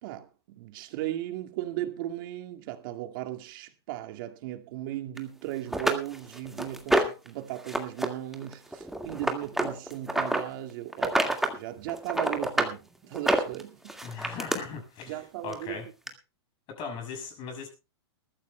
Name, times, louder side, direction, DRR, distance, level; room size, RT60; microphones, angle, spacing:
voice 1, 0.0-14.0 15.1-15.8, right 14 dB, 50° right, 2.1 m, -37 dB
sound 1, 5.2-5.3 5.7-7.3 7.6-8.1 8.3-10.4 10.9-11.6 11.9-12.7 13.1-14.6 15.5-15.6 16.1-16.2, right 1 dB, ahead, 1.9 m, -27 dB
voice 2, 14.0-15.1 15.4-15.9 16.7-17.7, left 5 dB, 35° left, 6.5 m, -38 dB
21.0 x 14.5 x 2.2 m
hypercardioid pair, 140°, 14 cm